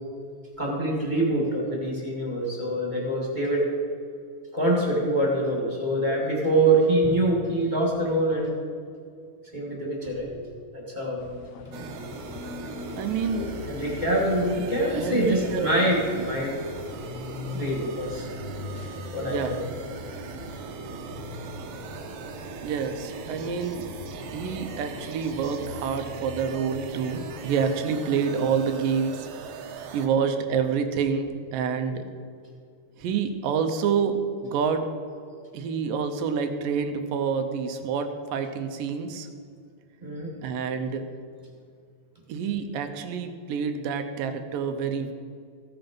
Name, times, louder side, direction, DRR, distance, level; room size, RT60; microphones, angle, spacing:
voice 1, 0.6-3.7 4.5-8.5 9.5-10.4 10.7-11.2 13.3-16.6 17.5-18.3 19.1-19.6 40.0-40.3, right 1 dB, 15° right, -2 dB, 1.7 m, -25 dB
sound 1, 11.2-27.8, left 5 dB, 75° left, 1.6 m, -41 dB
sound 2, 11.7-30.1, right 5 dB, 70° right, 2.1 m, -40 dB
voice 2, 13.0-13.5 15.0-15.8 19.3-19.5 22.6-23.9 24.3-29.3 29.9-32.0 33.0-34.9 35.5-39.3 40.4-41.1 42.3-45.1, right 6 dB, 85° right, 7 dB, 2.6 m, -27 dB
15.5 x 7.6 x 5.3 m, 2.3 s
omnidirectional pair, 3.8 m